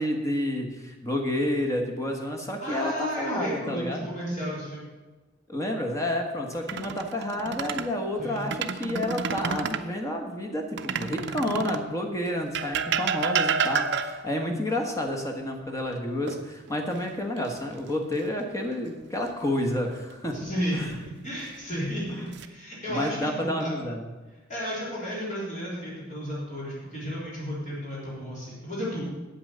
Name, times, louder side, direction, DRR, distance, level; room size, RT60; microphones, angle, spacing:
voice 1, 0.0-4.0 5.5-20.4 20.7-20.9 22.9-24.1, left 1 dB, 15° left, 2 dB, 1.4 m, -30 dB
voice 2, 2.6-4.9 8.2-8.4 20.3-21.0 21.2-23.7 24.5-29.1, equal, 40° left, -6 dB, 3.6 m, -33 dB
sound 1, 6.5-7.9 8.4-9.9 10.8-11.9 12.5-14.4 16.3-17.0 17.4-17.6 20.5-21.1 21.8-22.5, right 6 dB, 60° right, 0.6 m, -30 dB
8.7 x 8.6 x 6.8 m, 1.2 s
head